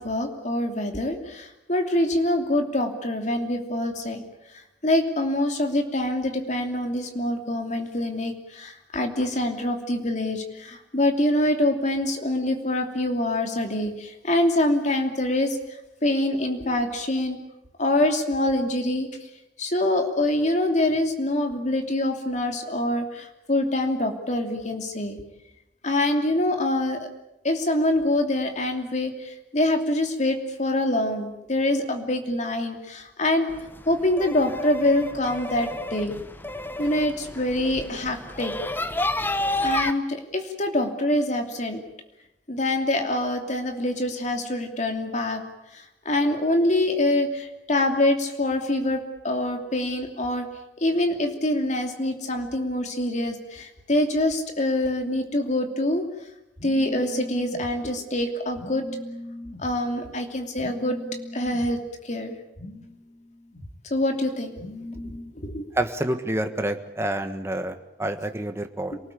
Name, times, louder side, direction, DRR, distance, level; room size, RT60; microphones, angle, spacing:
voice 1, 0.0-4.2 4.8-15.6 16.0-17.4 17.8-19.1 19.6-25.2 25.8-27.1 27.4-33.5 33.9-36.2 36.8-38.5 39.6-41.8 42.5-45.4 45.7-50.5 50.8-56.1 56.6-61.8 62.0-62.9 63.5-65.6, left 1 dB, 40° left, 4 dB, 2.9 m, -25 dB
sound 1, 33.5-39.9, left 1 dB, 10° left, 1.0 m, -31 dB
voice 2, 65.7-69.0, right 1 dB, 15° right, 7 dB, 1.5 m, -28 dB
27.0 x 19.0 x 8.5 m, 0.90 s
head